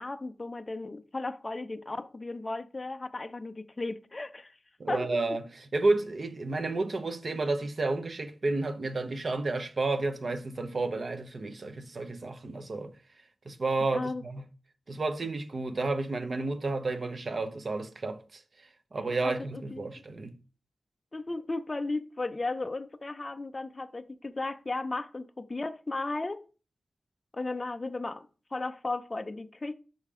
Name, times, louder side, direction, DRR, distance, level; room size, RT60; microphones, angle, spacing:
voice 1, 0.0-4.5 4.9-5.2 13.9-14.2 19.2-19.9 21.1-26.4 27.3-29.7, left 2 dB, 25° left, 0.3 m, -35 dB
voice 2, 4.8-12.9 13.5-14.4 14.9-20.4, right 3 dB, 40° right, 0.6 m, -31 dB
5.6 x 5.0 x 3.6 m
wide cardioid pair, 175°, 0 cm